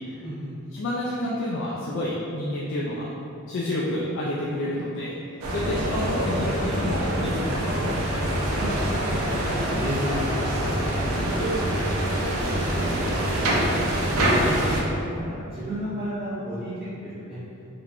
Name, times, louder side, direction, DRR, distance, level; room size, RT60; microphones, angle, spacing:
voice 1, 0.2-0.5 8.4-9.4 9.7-13.8 14.1-14.4 14.8-16.7 17.0-17.4, equal, 10° right, -16 dB, 0.7 m, -34 dB
voice 2, 0.7-3.1 3.5-5.2 5.5-8.0 9.4-9.6 14.4-14.5, left 1 dB, 60° left, -6 dB, 0.3 m, -29 dB
sound 1, 5.4-14.8, right 1 dB, 75° right, 0.4 m, -25 dB
3.3 x 2.2 x 2.4 m, 2.6 s
head